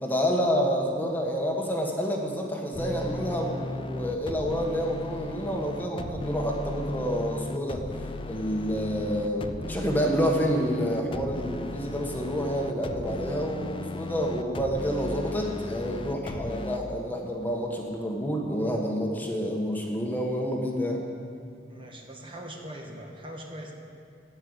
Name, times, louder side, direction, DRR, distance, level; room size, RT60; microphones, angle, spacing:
voice 1, 0.0-7.8 8.3-21.0, equal, 10° left, 0 dB, 1.3 m, -28 dB
sound 1, 2.7-16.8, left 2 dB, 30° left, 0.4 m, -36 dB
voice 2, 21.7-23.7, right 1 dB, 30° right, 0 dB, 1.5 m, -41 dB
16.5 x 5.6 x 7.9 m, 2.4 s
head